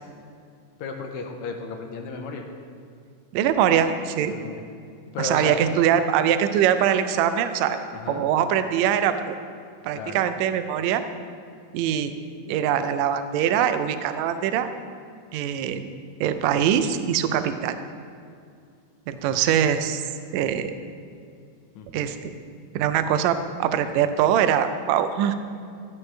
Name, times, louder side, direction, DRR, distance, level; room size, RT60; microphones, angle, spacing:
voice 1, 0.8-2.4 4.3-4.6 5.1-5.6 7.9-8.2 9.9-10.3 21.8-22.1, left 5 dB, 75° left, 3 dB, 1.9 m, -34 dB
voice 2, 3.3-4.3 5.2-7.8 8.1-9.3 9.8-11.0 11.7-12.1 12.5-14.7 15.3-15.9 16.2-17.8 19.1-20.0 20.3-20.7 21.9-22.3 22.7-25.3, right 9 dB, 80° right, 10 dB, 1.6 m, -22 dB
14.0 x 8.6 x 3.3 m, 2.3 s
omnidirectional pair, 3.7 m